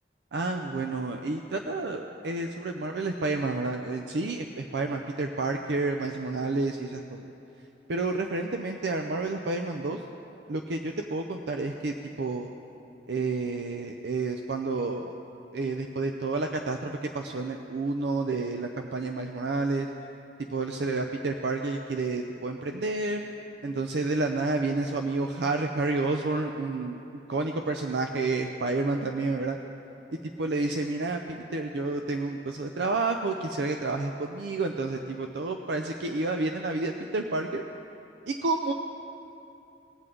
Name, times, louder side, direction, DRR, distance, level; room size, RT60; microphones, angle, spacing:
voice 1, 0.3-7.3 7.9-10.0 10.5-12.5 13.1-15.1 15.5-19.9 20.5-23.2 23.6-27.0 27.3-29.6 30.4-37.6 38.3-38.7, right 3 dB, 70° right, 4 dB, 0.5 m, -30 dB
19.0 x 7.8 x 3.8 m, 2.8 s
head